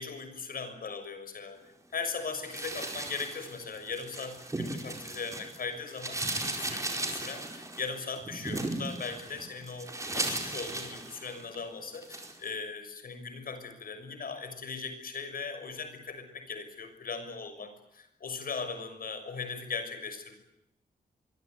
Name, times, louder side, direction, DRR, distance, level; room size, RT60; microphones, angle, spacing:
voice 1, 0.0-1.6 1.9-20.4, left 5 dB, 70° left, 8 dB, 6.5 m, -39 dB
sound 1, 2.4-5.6 5.9-11.5 11.9-12.4, right 2 dB, 20° right, 4.7 m, -36 dB
25.5 x 24.0 x 9.4 m, 0.84 s
wide cardioid pair, 150°, 15 cm